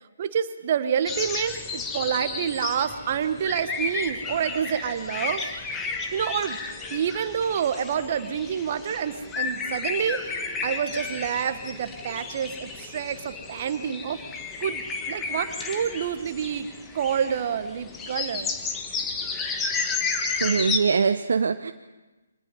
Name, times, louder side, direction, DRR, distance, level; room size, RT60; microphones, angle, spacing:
voice 1, 0.2-5.4 6.1-6.6 6.9-14.2 14.6-14.8 15.1-16.7 16.9-18.5, right 8 dB, 40° right, 10 dB, 1.4 m, -28 dB
sound 1, 1.0-20.8, left 4 dB, 10° left, 1.5 m, -32 dB
voice 2, 20.4-21.7, right 5 dB, 60° right, 10 dB, 0.7 m, -22 dB
25.0 x 19.5 x 5.5 m, 1.2 s
figure-of-eight pair, 140°, 0 cm